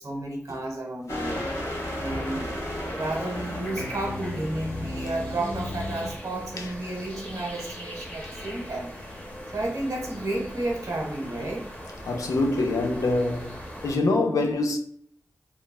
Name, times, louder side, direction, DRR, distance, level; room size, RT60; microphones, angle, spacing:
voice 1, 0.0-1.5 2.0-8.9 9.5-11.7, right 2 dB, 80° right, 0.9 m, -32 dB
sound 1, 1.1-6.1, left 1 dB, 60° left, 0.8 m, -33 dB
sound 2, 1.2-14.0, equal, 25° left, 0.7 m, -40 dB
voice 2, 12.1-13.6 13.8-14.8, left 2 dB, 90° left, 0.4 m, -24 dB
3.1 x 2.2 x 2.2 m
wide cardioid pair, 60°, 6 cm